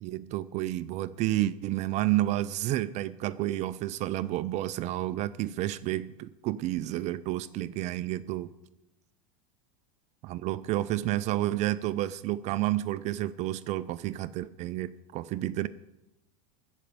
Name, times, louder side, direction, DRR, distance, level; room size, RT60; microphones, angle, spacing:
voice 1, 0.0-8.5 10.2-15.7, right 15 dB, 40° right, 16 dB, 0.4 m, -30 dB
13.5 x 5.2 x 8.9 m, 0.93 s
supercardioid pair, 120°, 18 cm